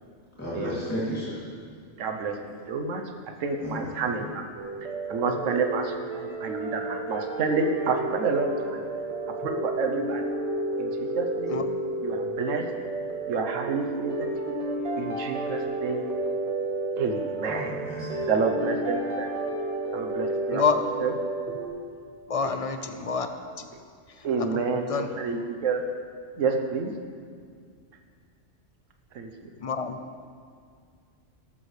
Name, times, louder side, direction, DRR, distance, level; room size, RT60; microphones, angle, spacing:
voice 1, 0.4-1.4 3.6-3.9 17.5-18.2, equal, 10° left, -10 dB, 2.7 m, -33 dB
voice 2, 2.0-3.1 3.4-4.5 5.1-8.8 9.4-10.2 10.8-11.7 12.0-12.7 13.3-14.3 15.0-16.0 17.0-17.8 18.3-19.3 19.9-20.6 21.0-21.1 24.2-25.8 26.4-26.9 29.1-29.3, right 4 dB, 85° right, 4 dB, 1.2 m, -29 dB
sound 1, 4.6-21.7, right 2 dB, 60° right, 1.8 m, -31 dB
voice 3, 22.3-23.3 23.6-23.7 24.2-24.3 24.5-24.6 24.9-25.1 29.6-30.0, left 5 dB, 40° left, 7 dB, 0.6 m, -27 dB
13.0 x 13.0 x 3.3 m, 2.1 s
omnidirectional pair, 1.3 m